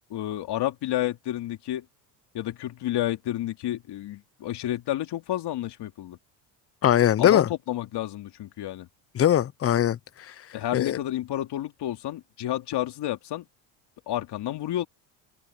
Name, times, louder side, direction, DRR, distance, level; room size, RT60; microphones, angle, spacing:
voice 1, 0.1-1.8 2.3-6.2 7.2-8.9 10.5-13.5 14.1-14.9, left 13 dB, 60° left, 2.6 m, -30 dB
voice 2, 6.8-7.5 9.1-10.3 10.7-11.0, left 11 dB, 30° left, 0.6 m, -21 dB
supercardioid pair, 90°, 47 cm